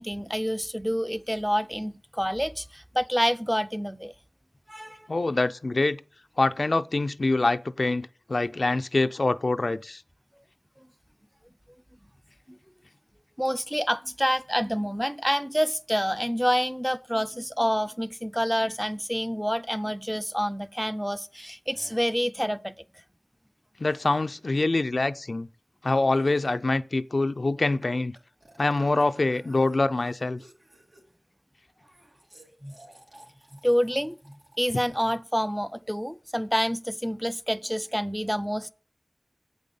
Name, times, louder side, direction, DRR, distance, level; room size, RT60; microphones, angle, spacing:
voice 1, 0.0-4.1 4.7-5.1 10.8-10.9 12.5-12.6 13.4-22.8 32.6-32.8 33.6-38.7, equal, ahead, 0.4 m, -28 dB
voice 2, 5.1-6.0 6.4-10.0 23.8-25.5 25.8-28.1 28.6-30.4, left 2 dB, 70° left, 0.4 m, -25 dB
sound 1, 20.1-20.2 21.4-21.5 21.7-22.2 23.8-24.2 26.1-26.7 27.8-27.9 28.1-31.2 31.8-35.5, right 1 dB, 90° right, 2.7 m, -55 dB
8.2 x 5.3 x 6.8 m
wide cardioid pair, 60°, 0 cm